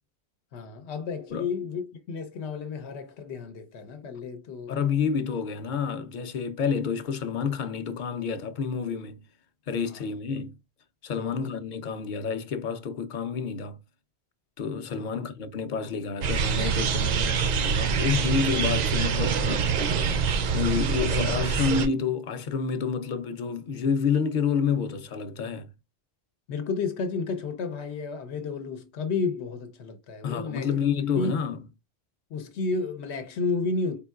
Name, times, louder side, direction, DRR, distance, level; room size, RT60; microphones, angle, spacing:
voice 1, 0.5-4.8 9.9-10.0 11.2-11.3 15.0-15.1 26.5-30.8 31.2-31.4 32.3-34.0, left 4 dB, 85° left, 1.0 m, -32 dB
voice 2, 4.7-9.3 9.7-10.6 11.0-13.8 14.6-19.7 20.5-25.7 30.2-31.6, left 6 dB, 55° left, 0.7 m, -29 dB
sound 1, 16.2-21.9, right 6 dB, 55° right, 0.5 m, -25 dB
sound 2, 18.8-22.3, right 9 dB, 75° right, 0.8 m, -39 dB
4.4 x 3.6 x 2.3 m
omnidirectional pair, 1.1 m